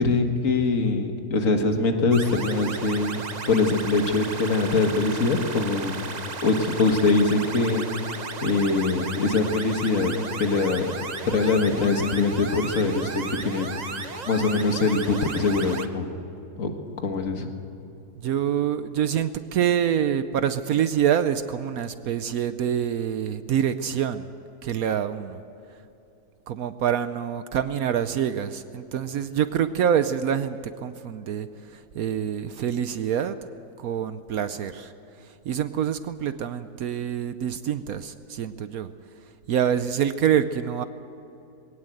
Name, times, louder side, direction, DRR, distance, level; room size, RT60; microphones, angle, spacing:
voice 1, 0.0-3.2 3.5-6.1 6.4-7.9 8.4-10.1 10.4-10.8 11.3-13.7 14.3-16.1 16.6-16.7 17.0-17.5, left 3 dB, 55° left, 4 dB, 2.0 m, -23 dB
sound 1, 2.1-15.9, right 4 dB, 35° right, 0.8 m, -35 dB
voice 2, 18.2-24.3 24.6-25.4 26.5-33.4 33.8-34.9 35.2-38.9 39.5-40.8, right 9 dB, 65° right, 11 dB, 1.1 m, -26 dB
21.0 x 18.0 x 7.8 m, 2.9 s
omnidirectional pair, 1.7 m